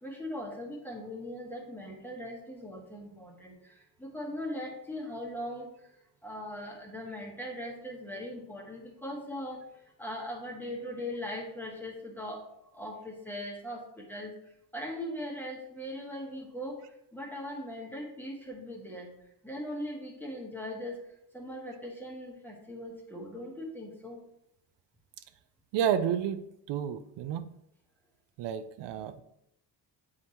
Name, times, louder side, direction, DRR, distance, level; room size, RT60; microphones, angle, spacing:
voice 1, 0.0-3.5 4.0-5.7 6.2-9.6 10.0-12.4 12.7-13.8 14.1-14.3 14.7-16.8 17.1-19.1 19.4-20.9 21.3-24.2, left 1 dB, 5° left, -1 dB, 1.1 m, -39 dB
voice 2, 25.7-27.5 28.4-29.2, right 9 dB, 80° right, 10 dB, 0.6 m, -31 dB
8.0 x 4.8 x 2.9 m, 0.76 s
cardioid pair, 155°, 42 cm